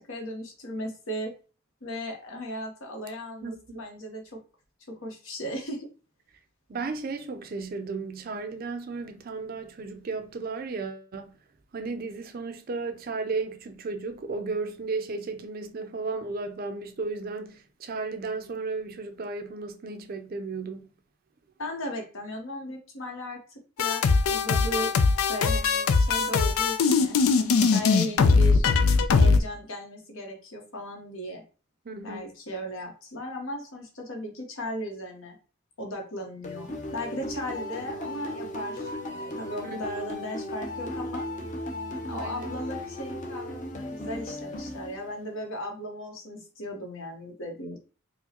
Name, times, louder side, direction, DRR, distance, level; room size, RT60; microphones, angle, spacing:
voice 1, 0.0-1.3 1.8-4.4 4.9-5.9 21.6-23.4 23.8-24.9 25.3-28.7 29.1-31.4 32.0-35.4 35.8-41.3 42.1-47.8, equal, 70° left, 1.1 m, -36 dB
voice 2, 3.4-3.8 6.7-11.3 11.7-20.9 31.9-32.3 39.6-39.8 42.1-42.5, right 4 dB, 45° right, 0.4 m, -34 dB
sound 1, 23.8-29.4, left 4 dB, 90° left, 0.4 m, -21 dB
sound 2, 36.4-45.4, left 1 dB, 35° left, 0.6 m, -36 dB
4.5 x 2.1 x 2.9 m
head